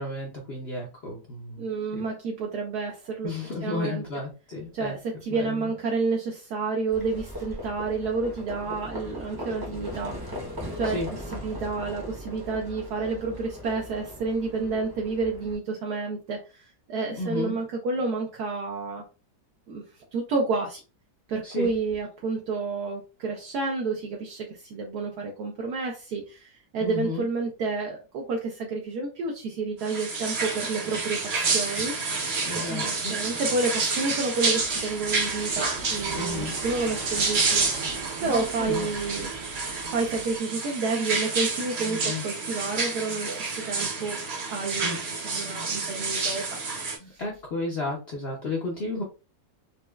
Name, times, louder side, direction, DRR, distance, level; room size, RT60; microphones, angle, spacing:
voice 1, 0.0-1.6 1.9-2.0 3.2-5.0 5.3-5.6 10.8-11.1 17.2-17.6 21.4-21.7 26.8-27.2 32.4-33.1 36.1-36.5 38.2-38.9 41.9-42.2 44.8-45.0 47.0-49.0, left 3 dB, 55° left, -1 dB, 0.7 m, -33 dB
voice 2, 1.6-3.3 3.6-4.0 4.7-10.4 10.8-11.0 11.3-19.0 19.7-20.8 21.3-37.6 38.2-39.3 39.9-44.2 44.5-45.0 45.2-46.6 47.0-47.2, right 4 dB, 70° right, 0 dB, 1.2 m, -30 dB
Livestock farm animals working animals, 6.9-15.5, left 1 dB, 20° right, 0.7 m, -38 dB
sound 1, 29.8-47.0, right 4 dB, 50° right, 0.9 m, -29 dB
sound 2, 34.5-40.4, right 4 dB, 90° right, 1.6 m, -40 dB
4.1 x 2.3 x 2.2 m, 0.31 s
omnidirectional pair, 1.8 m